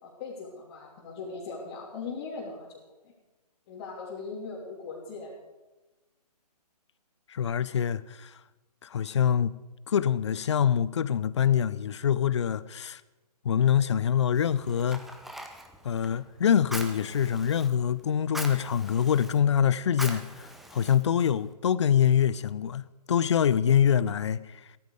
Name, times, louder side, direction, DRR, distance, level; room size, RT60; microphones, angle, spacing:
voice 1, 0.0-2.8 3.7-5.3, left 4 dB, 30° left, 3.2 m, -39 dB
voice 2, 7.3-8.4 8.8-9.5 9.9-13.0 13.4-15.1 15.8-24.6, left 8 dB, 45° left, 0.7 m, -25 dB
Fire, 14.3-21.5, right 1 dB, ahead, 0.9 m, -43 dB
16.5 x 14.5 x 5.0 m
figure-of-eight pair, 140°, 21 cm